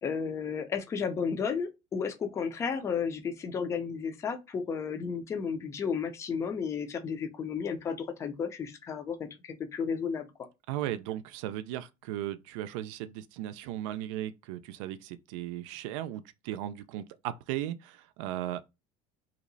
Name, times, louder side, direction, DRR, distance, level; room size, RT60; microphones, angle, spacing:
voice 1, 0.0-10.3, left 6 dB, 20° left, 0.5 m, -33 dB
voice 2, 10.7-18.6, right 13 dB, 90° right, 0.4 m, -36 dB
3.1 x 2.8 x 3.9 m
cardioid pair, 175°, 16 cm